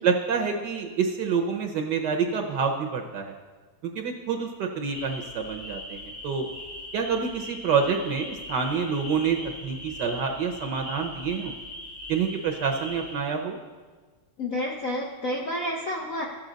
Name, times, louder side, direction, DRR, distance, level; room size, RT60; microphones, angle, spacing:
voice 1, 0.0-3.3 3.8-6.5 6.9-11.5 12.1-13.6, right 6 dB, 65° right, 3 dB, 1.1 m, -27 dB
sound 1, 4.8-13.1, left 1 dB, 80° left, 4.1 m, -40 dB
voice 2, 14.4-16.3, left 1 dB, 65° left, -1 dB, 0.8 m, -30 dB
13.5 x 7.4 x 3.9 m, 1.4 s
omnidirectional pair, 2.4 m